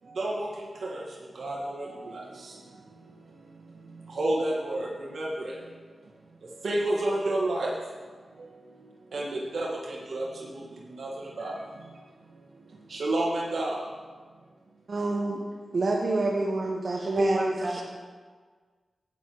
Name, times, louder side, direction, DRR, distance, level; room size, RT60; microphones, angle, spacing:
voice 1, 0.0-6.1 6.4-13.9, right 1 dB, 80° right, -4 dB, 1.6 m, -32 dB
voice 2, 14.9-15.4 15.7-17.8, right 2 dB, 55° right, -1 dB, 1.1 m, -28 dB
voice 3, 17.2-17.8, right 1 dB, 35° right, -5 dB, 3.5 m, -28 dB
13.5 x 9.6 x 3.0 m, 1.5 s
cardioid pair, 65°, 0 cm